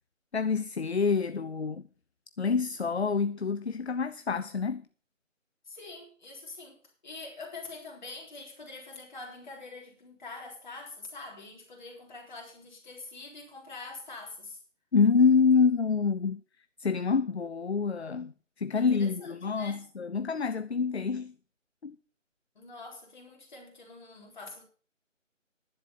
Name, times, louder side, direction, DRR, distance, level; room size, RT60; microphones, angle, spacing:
voice 1, 0.3-1.8 2.4-4.9 14.9-16.4 16.8-21.3 21.8-22.0, left 5 dB, 55° left, 0.7 m, -27 dB
voice 2, 5.7-14.6 18.8-19.8 22.5-24.6, left 3 dB, 35° left, 4.0 m, -45 dB
11.0 x 10.5 x 5.7 m
figure-of-eight pair, 160°, 39 cm